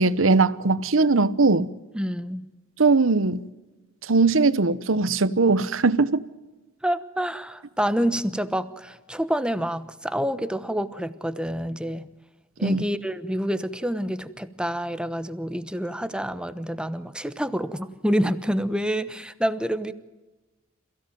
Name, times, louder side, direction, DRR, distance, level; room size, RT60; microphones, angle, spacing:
voice 1, 0.0-1.7 2.8-3.5 4.0-6.2 12.6-12.8, right 3 dB, 70° right, 1.0 m, -20 dB
voice 2, 1.9-2.4 6.8-12.1 12.6-19.9, equal, 5° right, 1.0 m, -27 dB
27.5 x 16.5 x 9.3 m
head